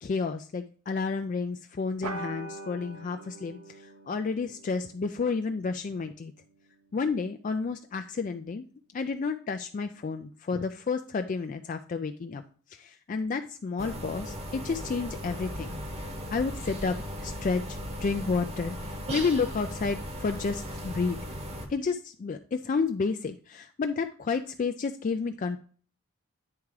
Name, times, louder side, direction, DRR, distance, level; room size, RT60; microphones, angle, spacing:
voice 1, 0.0-3.6 4.1-6.3 6.9-8.6 8.9-12.4 12.7-15.8 16.3-21.2 21.7-25.6, left 4 dB, 35° left, 7 dB, 0.3 m, -31 dB
sound 1, 2.0-6.9, right 2 dB, 75° right, 0.9 m, -44 dB
sound 2, 13.8-21.7, equal, 30° right, 0.9 m, -37 dB
9.5 x 3.5 x 4.8 m, 0.43 s
head